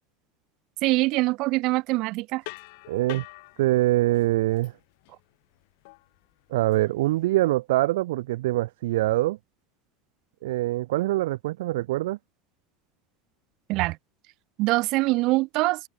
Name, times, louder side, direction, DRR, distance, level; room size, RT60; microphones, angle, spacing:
voice 1, 0.8-2.4 13.7-14.0 14.6-15.8, right 22 dB, 55° right, 1.0 m, -23 dB
sound 1, 2.4-7.5, left 26 dB, 70° left, 4.0 m, -46 dB
voice 2, 2.9-3.2 3.6-4.7 6.5-9.4 10.4-12.2, right 17 dB, 85° right, 0.8 m, -24 dB
open air
supercardioid pair, 130°, 0 cm